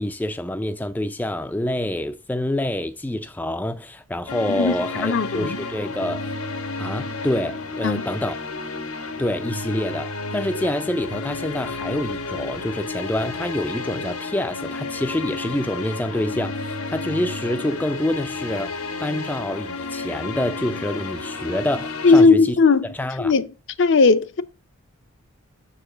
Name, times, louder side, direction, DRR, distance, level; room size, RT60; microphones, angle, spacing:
voice 1, 0.0-6.3 6.8-8.4 9.2-18.7 19.0-22.6 22.9-23.3, left 1 dB, 10° left, 0.3 m, -27 dB
sound 1, 4.3-22.2, left 3 dB, 90° left, 1.1 m, -31 dB
voice 2, 5.0-5.6 7.8-8.0 22.0-23.5 23.8-24.4, left 4 dB, 55° left, 0.5 m, -17 dB
6.7 x 4.9 x 4.9 m
head